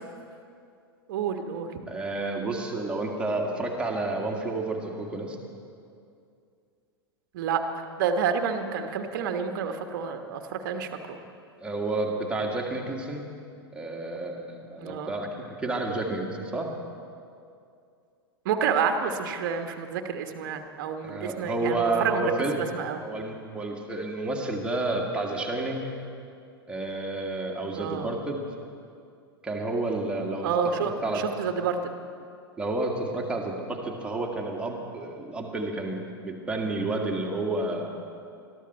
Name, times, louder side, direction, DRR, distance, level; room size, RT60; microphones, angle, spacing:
voice 1, 1.1-1.7 7.3-11.2 14.8-15.1 18.4-23.1 27.8-28.1 30.4-31.9, right 6 dB, 50° right, 6 dB, 1.2 m, -29 dB
voice 2, 1.9-5.4 11.6-13.2 13.7-16.7 21.0-22.7 23.0-25.8 26.7-28.4 29.4-30.5 30.8-31.2 32.6-37.9, right 2 dB, 10° right, -1 dB, 1.9 m, -30 dB
21.5 x 13.0 x 4.3 m, 2.4 s
figure-of-eight pair, 95°, 13 cm